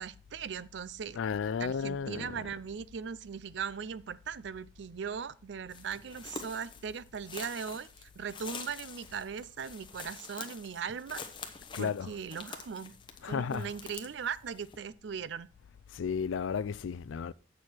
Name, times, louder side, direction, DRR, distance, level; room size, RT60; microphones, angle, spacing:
voice 1, 0.0-1.2 1.6-12.9 13.3-15.5, right 6 dB, 65° right, 0.4 m, -39 dB
voice 2, 1.2-2.5 11.7-12.2 13.2-13.7 15.9-17.3, left 6 dB, 80° left, 0.4 m, -33 dB
sound 1, 5.7-14.8, left 5 dB, 25° left, 0.8 m, -47 dB
8.4 x 6.2 x 4.4 m
head